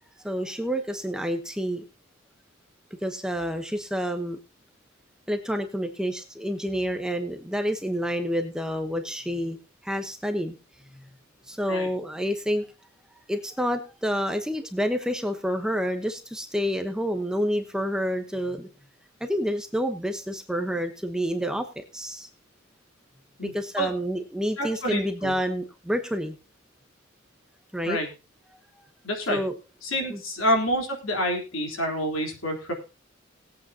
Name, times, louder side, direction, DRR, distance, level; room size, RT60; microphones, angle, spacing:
voice 1, 0.2-1.8 3.0-4.4 5.3-9.6 9.8-10.5 10.9-11.0 11.5-12.6 13.3-18.7 19.2-22.3 23.4-26.3 27.7-28.0 29.3-29.5 30.1-30.2, equal, 5° right, 6 dB, 0.9 m, -28 dB
voice 2, 23.4-23.9 24.6-25.3 27.9-28.1 29.0-29.4 29.8-32.7, equal, 75° left, 2 dB, 3.7 m, -27 dB
19.5 x 8.5 x 2.8 m, 0.31 s
head